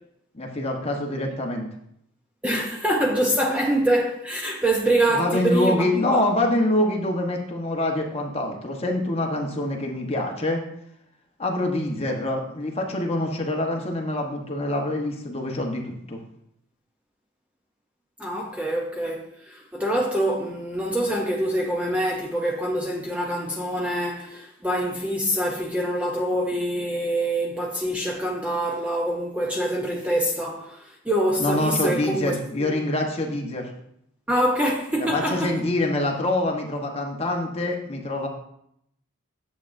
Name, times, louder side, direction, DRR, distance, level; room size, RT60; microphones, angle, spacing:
voice 1, 0.3-1.7 5.1-10.6 11.4-16.2 31.4-33.7 35.0-38.3, left 1 dB, 30° left, 1.0 m, -25 dB
voice 2, 2.4-6.2 11.7-11.8 18.2-32.7 34.3-35.6, right 1 dB, 5° right, 0.5 m, -25 dB
9.2 x 7.4 x 2.6 m
head